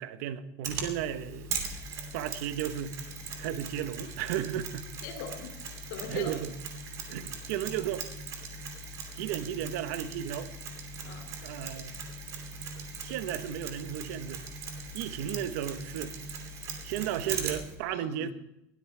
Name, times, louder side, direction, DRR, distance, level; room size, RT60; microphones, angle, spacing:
voice 1, 0.0-1.5 2.1-3.0 3.4-4.9 6.1-6.5 7.1-8.1 9.1-10.5 11.4-12.0 13.0-14.4 14.9-16.2 16.8-18.3, right 10 dB, 65° right, 1.2 m, -34 dB
Mechanisms, 0.6-17.7, right 4 dB, 40° right, 2.9 m, -40 dB
voice 2, 5.0-6.3 11.0-11.3 17.9-18.1, left 6 dB, 80° left, 2.7 m, -41 dB
21.5 x 13.5 x 3.4 m
cardioid pair, 165°, 9 cm